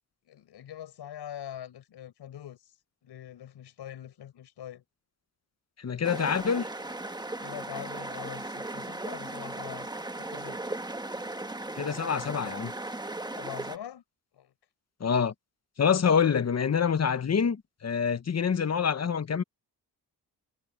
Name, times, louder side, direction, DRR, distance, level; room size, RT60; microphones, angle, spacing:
voice 1, 0.3-2.7 3.0-4.8 7.4-9.9 10.2-10.6 13.4-14.0 14.3-14.5, left 10 dB, 85° left, 5.6 m, -43 dB
voice 2, 5.8-6.7 11.8-12.7 15.0-15.3 15.8-19.4, left 7 dB, 40° left, 1.2 m, -26 dB
sound 1, 6.0-13.8, right 2 dB, 10° right, 1.4 m, -37 dB
cardioid pair, 80°, 40 cm